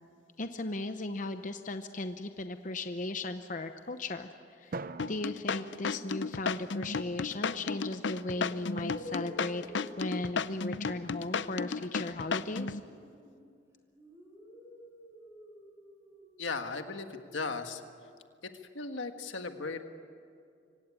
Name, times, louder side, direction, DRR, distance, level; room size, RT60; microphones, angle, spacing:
voice 1, 0.4-4.8 5.1-9.6 10.0-12.8, left 2 dB, 40° left, 8 dB, 0.8 m, -37 dB
Drum, 4.7-7.0, right 3 dB, 50° right, 0.6 m, -45 dB
sound 1, 5.0-12.8, left 5 dB, 70° left, 0.6 m, -33 dB
sound 2, 8.2-13.5 14.0-17.9, equal, 15° right, 5.8 m, -51 dB
voice 2, 16.4-17.8 18.7-19.8, left 4 dB, 90° left, 7 dB, 1.6 m, -36 dB
24.5 x 17.0 x 9.8 m, 2.3 s
head